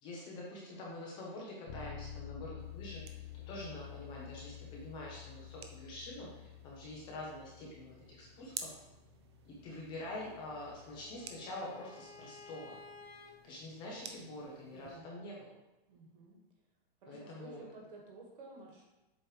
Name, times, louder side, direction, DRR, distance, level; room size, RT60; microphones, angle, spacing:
voice 1, 0.0-8.8 9.4-12.8 13.4-15.5 17.1-17.6, left 1 dB, 15° left, -3 dB, 0.6 m, -46 dB
Bass guitar, 1.7-11.5, left 10 dB, 50° left, 0.9 m, -51 dB
sound 1, 2.6-15.0, right 6 dB, 30° right, 0.4 m, -54 dB
Bowed string instrument, 10.2-13.3, left 4 dB, 80° left, 1.3 m, -55 dB
voice 2, 14.7-15.4 15.9-16.4 17.0-18.9, right 3 dB, 55° right, -1 dB, 2.1 m, -53 dB
7.5 x 3.1 x 4.9 m, 1.0 s
supercardioid pair, 170°, 30 cm